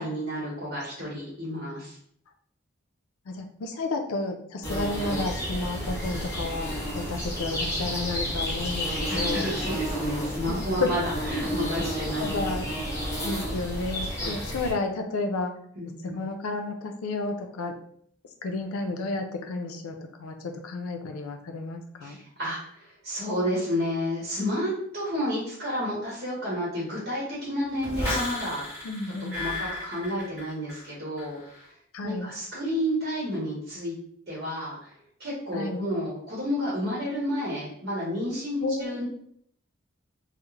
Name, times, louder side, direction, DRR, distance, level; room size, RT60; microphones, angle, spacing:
voice 1, 0.0-2.0 4.7-4.8 9.1-12.3 15.8-16.2 22.0-28.8 29.3-31.7 32.0-33.9 34.3-34.9 35.2-39.1, equal, 45° right, -7 dB, 0.9 m, -31 dB
voice 2, 3.3-6.7 6.9-9.5 10.5-10.9 12.2-12.7 13.2-15.5 16.0-17.8 18.4-22.2 28.8-29.4 31.9-32.3 35.5-35.9 38.6-39.0, left 3 dB, 90° left, 5 dB, 0.4 m, -31 dB
sound 1, 4.6-14.7, equal, 15° left, 0.6 m, -31 dB
sound 2, 27.8-30.9 31.2-31.6, left 2 dB, 10° right, 1.1 m, -33 dB
2.3 x 2.0 x 3.1 m, 0.65 s
head